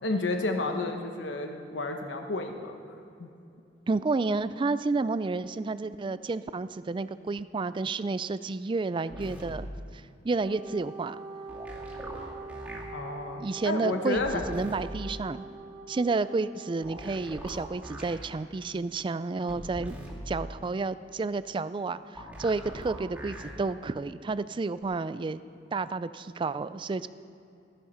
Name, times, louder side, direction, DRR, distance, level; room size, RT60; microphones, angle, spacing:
voice 1, 0.0-2.7 3.2-3.3 12.9-14.4, left 2 dB, 85° left, 4 dB, 1.1 m, -31 dB
voice 2, 3.9-9.7 10.2-11.2 13.4-14.2 14.5-15.4 15.9-20.0 20.3-25.4 25.7-27.1, right 3 dB, 30° right, 14 dB, 0.3 m, -30 dB
sound 1, 9.1-9.5 11.5-12.8 14.1-14.8 16.8-18.2 19.5-20.2 22.1-23.5 24.8-24.9, equal, 10° right, 2.3 m, -42 dB
Wind instrument woodwind instrument, 10.4-18.1, right 3 dB, 45° right, 1.2 m, -44 dB
16.5 x 10.0 x 5.7 m, 2.6 s
head